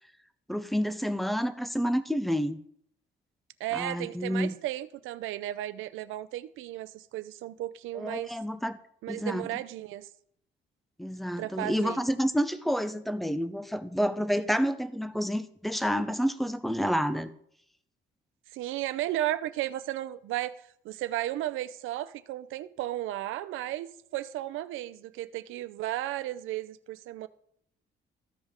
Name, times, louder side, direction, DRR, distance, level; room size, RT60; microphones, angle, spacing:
voice 1, 0.5-2.6 3.7-4.5 7.9-8.8 9.1-9.5 11.0-17.3, equal, ahead, 0.7 m, -29 dB
voice 2, 3.6-8.3 9.0-10.1 11.4-12.0 18.5-27.3, right 14 dB, 90° right, 0.6 m, -34 dB
14.5 x 5.3 x 3.7 m
cardioid pair, 90°, 20 cm